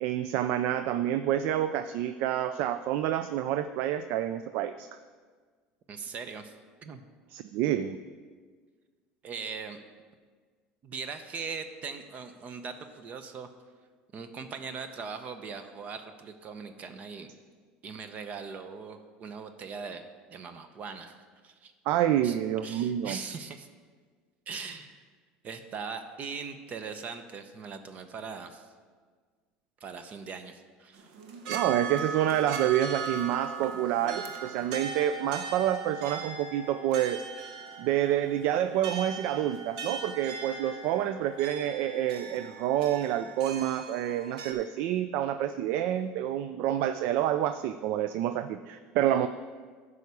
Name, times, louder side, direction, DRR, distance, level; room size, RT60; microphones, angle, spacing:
voice 1, 0.0-4.9 7.3-8.0 21.9-23.2 31.5-37.2 37.8-49.3, right 11 dB, 65° right, 11 dB, 0.3 m, -28 dB
voice 2, 5.9-6.5 6.8-7.1 9.2-9.8 10.8-13.5 14.1-17.3 17.8-20.0 20.3-21.7 22.2-23.7 24.5-25.0 25.4-28.7 29.8-31.1, right 5 dB, 40° right, 9 dB, 0.7 m, -40 dB
sound 1, 31.0-44.5, right 5 dB, 85° right, 1.0 m, -39 dB
9.1 x 4.9 x 6.9 m, 1.5 s
supercardioid pair, 105°, 4 cm